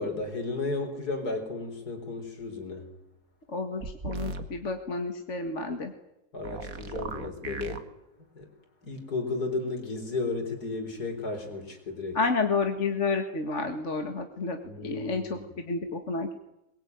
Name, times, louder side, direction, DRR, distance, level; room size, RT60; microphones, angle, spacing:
voice 1, 0.0-2.9 6.3-7.9 8.3-8.5 8.8-12.2 14.7-15.4, left 3 dB, 55° left, 6 dB, 4.7 m, -33 dB
voice 2, 3.5-5.9 12.1-16.4, left 4 dB, 40° left, 5 dB, 2.0 m, -30 dB
sound 1, 3.8-4.5 6.4-7.8, right 3 dB, 50° right, 2.2 m, -36 dB
22.5 x 22.0 x 9.4 m, 0.89 s
omnidirectional pair, 2.0 m